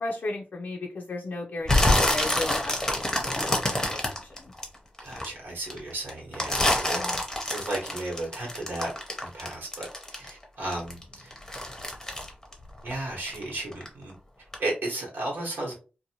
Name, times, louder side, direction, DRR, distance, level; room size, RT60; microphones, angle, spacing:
voice 1, 0.0-4.5 6.9-7.2, left 2 dB, 55° left, 0.4 m, -35 dB
sound 1, 1.6-5.2 5.7-10.4 10.7-13.4 13.7-14.1 14.5-14.6, left 1 dB, 15° left, 0.7 m, -26 dB
voice 2, 5.0-7.2 7.5-8.9 9.2-11.3 12.8-14.1 14.6-15.7, right 2 dB, 85° right, 1.1 m, -34 dB
2.6 x 2.1 x 2.8 m
wide cardioid pair, 105°, 3 cm